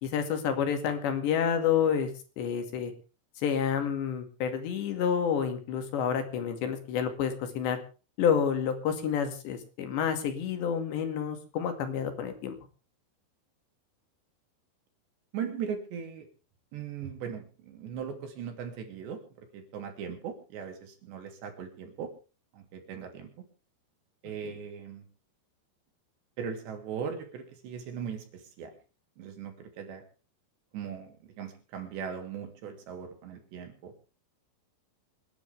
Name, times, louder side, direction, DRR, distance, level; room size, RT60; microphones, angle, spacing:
voice 1, 0.0-2.1 2.4-2.9 3.4-7.8 8.2-12.6 24.4-24.5, left 7 dB, 80° left, 7 dB, 4.4 m, -29 dB
voice 2, 15.3-16.3 16.7-22.1 22.5-23.5 24.2-25.1 26.4-28.7 29.2-30.0 30.7-33.9, right 7 dB, 75° right, 4 dB, 5.0 m, -39 dB
28.0 x 10.5 x 3.5 m, 0.35 s
omnidirectional pair, 5.0 m